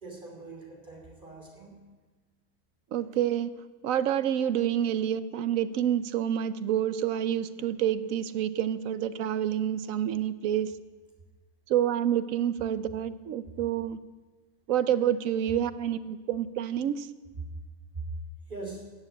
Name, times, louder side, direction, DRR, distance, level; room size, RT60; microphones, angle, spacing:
voice 1, 0.0-1.8 18.5-18.9, right 3 dB, 30° right, 0 dB, 3.3 m, -43 dB
voice 2, 2.9-3.5 3.8-10.7 11.7-14.0 14.7-17.1, right 10 dB, 70° right, 13 dB, 1.0 m, -28 dB
14.0 x 7.4 x 8.5 m, 1.3 s
omnidirectional pair, 1.6 m